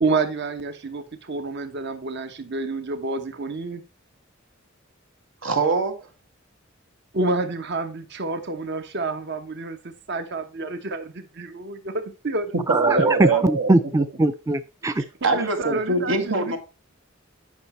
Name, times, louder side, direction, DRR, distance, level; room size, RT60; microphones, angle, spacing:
voice 1, 0.0-3.8 7.1-12.6 12.9-13.1 15.2-16.6, right 3 dB, 60° right, 1.1 m, -29 dB
voice 2, 5.4-5.9 12.7-13.7 15.2-16.6, right 3 dB, 80° right, 2.0 m, -22 dB
voice 3, 12.7-15.0, right 2 dB, 15° right, 0.4 m, -21 dB
9.6 x 5.8 x 4.3 m
head